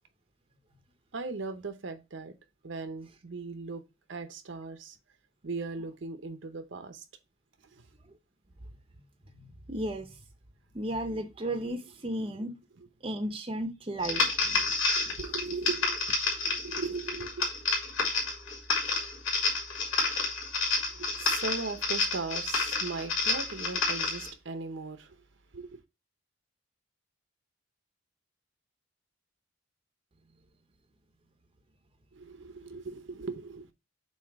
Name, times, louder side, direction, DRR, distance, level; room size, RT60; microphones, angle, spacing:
voice 1, 1.1-2.3 2.6-3.8 4.1-5.0 5.4-7.0 7.6-7.9 12.8-12.9 14.4-16.2 16.4-17.5 20.9-25.2 25.5-25.8 32.1-33.7, right 3 dB, 65° right, 0.7 m, -38 dB
voice 2, 9.3-10.1 10.7-12.5 13.0-14.2, right 1 dB, 25° right, 0.7 m, -34 dB
sound 1, 14.0-24.3, left 3 dB, 85° left, 2.5 m, -29 dB
7.2 x 2.8 x 4.6 m
head